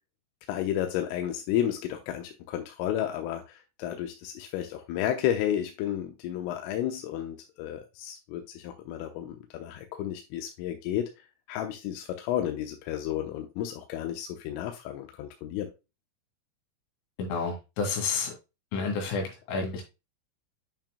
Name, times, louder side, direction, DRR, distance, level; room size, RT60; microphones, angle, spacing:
voice 1, 0.5-11.1 11.5-15.7, left 11 dB, 90° left, 3.4 m, -32 dB
voice 2, 17.2-18.3 18.7-19.8, left 4 dB, 75° left, 4.9 m, -30 dB
9.1 x 5.9 x 2.2 m
omnidirectional pair, 5.8 m